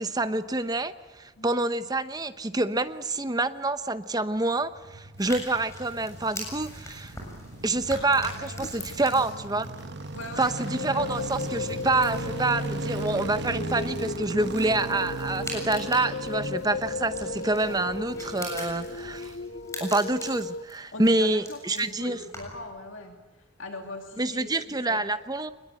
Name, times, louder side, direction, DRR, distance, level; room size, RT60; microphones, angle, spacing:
voice 1, 0.0-7.1 7.6-9.7 10.4-19.3 19.8-22.2 24.2-25.5, right 2 dB, 20° right, 11 dB, 0.9 m, -27 dB
sound 1, 4.6-19.9 20.1-20.2, right 2 dB, 55° right, 1.3 m, -38 dB
sound 2, 5.2-22.7, left 1 dB, 15° left, 7.2 m, -44 dB
voice 2, 8.1-9.2 10.1-11.2 17.7-17.9 20.9-23.1 23.6-25.0, left 2 dB, 70° left, 3 dB, 2.5 m, -41 dB
sound 3, 10.4-20.6, left 3 dB, 50° left, 0.7 m, -35 dB
24.0 x 21.5 x 9.0 m, 1.2 s
head